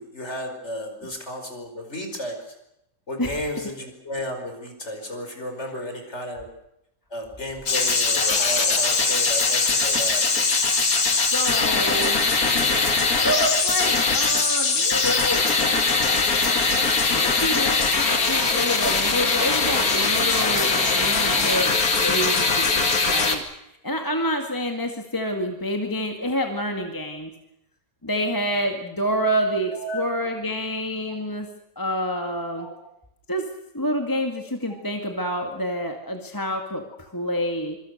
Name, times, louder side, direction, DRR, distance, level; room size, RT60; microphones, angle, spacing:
voice 1, 0.0-2.6 3.1-6.5 7.1-10.2 19.2-19.3 28.4-28.6 29.7-30.0 31.1-31.2 32.5-32.7, equal, 35° left, 5 dB, 5.5 m, -33 dB
sound 1, 7.7-23.4, left 4 dB, 55° left, 2.8 m, -21 dB
voice 2, 11.3-12.2 13.2-15.4 16.5-16.6 17.1-23.4 23.8-27.3 28.0-31.5 31.8-32.7 33.3-33.5 33.7-37.8, equal, 10° left, 4 dB, 2.0 m, -28 dB
26.0 x 24.0 x 6.6 m, 0.82 s
omnidirectional pair, 1.9 m